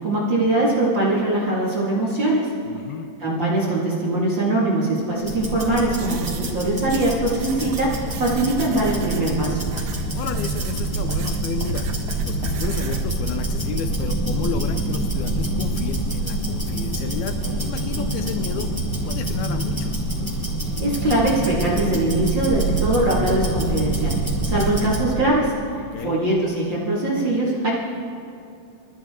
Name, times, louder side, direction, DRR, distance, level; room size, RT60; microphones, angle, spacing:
voice 1, 0.0-2.5 3.2-9.7 20.8-25.5 26.0-27.7, right 1 dB, 40° right, -5 dB, 2.0 m, -22 dB
voice 2, 2.7-3.1 10.1-11.9 12.3-20.0 25.7-26.2, left 8 dB, 80° left, 8 dB, 2.4 m, -32 dB
Tick-tock, 5.2-25.1, right 2 dB, 5° left, 3.8 m, -26 dB
sound 1, 6.0-13.1, right 8 dB, 90° right, 1.6 m, -40 dB
25.0 x 14.5 x 3.7 m, 2.5 s
omnidirectional pair, 4.6 m